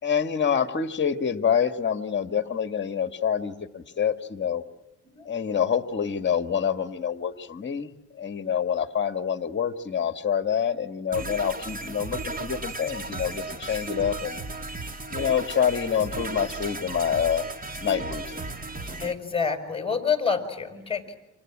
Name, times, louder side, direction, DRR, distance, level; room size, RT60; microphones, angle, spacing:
voice 1, 0.0-4.6 5.3-14.4 15.1-17.4 17.8-18.5, left 7 dB, 35° left, 8 dB, 2.0 m, -27 dB
sound 1, 11.1-19.1, right 2 dB, 30° right, 3.3 m, -35 dB
voice 2, 19.0-21.2, left 6 dB, 20° left, 7 dB, 6.1 m, -27 dB
29.0 x 26.5 x 7.5 m, 0.98 s
cardioid pair, 90°, 30 cm